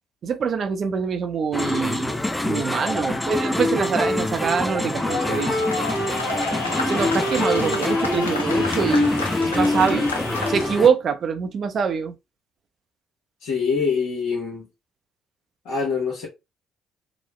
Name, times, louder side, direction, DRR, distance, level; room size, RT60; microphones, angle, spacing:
voice 1, 0.2-2.1 2.4-5.6 6.8-10.2 10.5-12.1, right 6 dB, 50° right, 0.5 m, -24 dB
sound 1, 1.5-10.9, left 1 dB, 10° left, 0.5 m, -24 dB
sound 2, 4.9-10.9, left 3 dB, 90° left, 0.3 m, -31 dB
voice 2, 13.4-14.7 15.6-16.3, left 5 dB, 70° left, 0.9 m, -24 dB
3.0 x 2.0 x 3.0 m
figure-of-eight pair, 45°, 0 cm